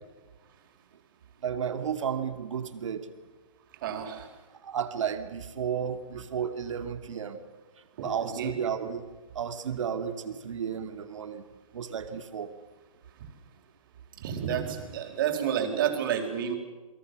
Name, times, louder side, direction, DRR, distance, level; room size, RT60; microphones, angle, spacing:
voice 1, 1.4-3.1 4.6-7.4 8.0-9.0 9.3-11.4 11.7-12.5, right 8 dB, 60° right, 8 dB, 2.7 m, -33 dB
voice 2, 3.8-4.3 8.0-8.5 14.2-16.5, right 8 dB, 40° right, 5 dB, 4.4 m, -30 dB
29.5 x 23.0 x 6.7 m, 1.3 s
hypercardioid pair, 160°, 18 cm